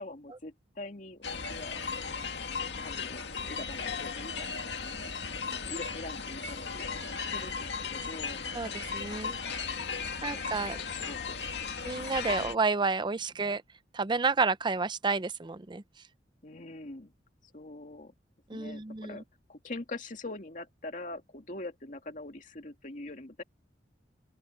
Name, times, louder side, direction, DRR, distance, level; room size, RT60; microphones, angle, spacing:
voice 1, 0.0-1.8 2.8-5.1 5.5-8.4 10.0-11.4 13.3-13.4 16.4-17.1 17.5-18.1 18.5-19.2 19.5-23.4, left 2 dB, 45° left, 2.5 m, -44 dB
sound 1, 1.2-12.5, left 5 dB, 75° left, 2.1 m, -36 dB
voice 2, 8.5-9.4 10.2-10.8 11.8-13.6 13.9-15.8 18.5-19.2, right 4 dB, 25° right, 0.6 m, -30 dB
open air
head